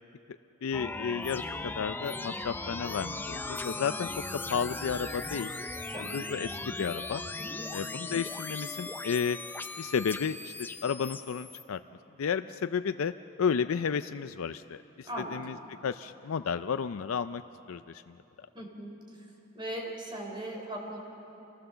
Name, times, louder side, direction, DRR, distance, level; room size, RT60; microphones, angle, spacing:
voice 1, 0.6-4.1 4.5-5.5 6.0-7.2 7.7-9.4 9.8-11.8 12.2-13.1 13.4-15.6 15.8-17.4 17.7-18.1, left 6 dB, 85° left, 10 dB, 0.4 m, -32 dB
sound 1, 0.7-11.6, left 2 dB, 10° left, 0.5 m, -38 dB
voice 2, 7.4-7.7 15.0-15.4 18.5-18.9 19.5-21.0, right 1 dB, 20° right, 0 dB, 3.5 m, -38 dB
27.0 x 18.0 x 6.9 m, 3.0 s
head